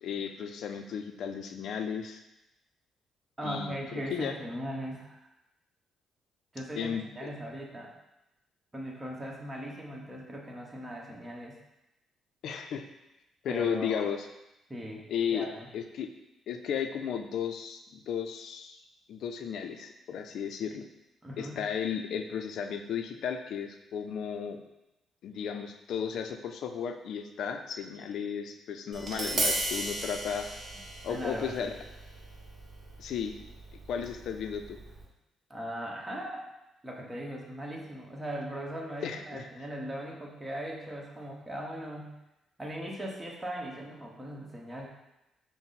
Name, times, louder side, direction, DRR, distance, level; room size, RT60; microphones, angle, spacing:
voice 1, 0.0-2.2 3.4-3.8 4.1-4.4 6.8-7.3 12.4-12.9 13.4-14.3 15.1-15.5 15.7-16.1 16.5-18.8 19.1-20.8 21.4-24.6 25.2-30.5 31.0-31.7 33.0-33.4 33.9-34.8 39.0-39.5, left 7 dB, 75° left, 6 dB, 0.4 m, -34 dB
voice 2, 3.4-5.3 6.5-7.9 8.7-11.6 13.5-14.1 14.7-15.7 21.2-21.6 31.1-31.7 35.5-36.4 36.8-42.2 42.6-44.9, equal, 15° right, -2 dB, 1.0 m, -39 dB
Tap, 28.9-35.1, right 2 dB, 45° right, 0.9 m, -36 dB
5.8 x 2.0 x 4.1 m, 0.93 s
cardioid pair, 90°, 0 cm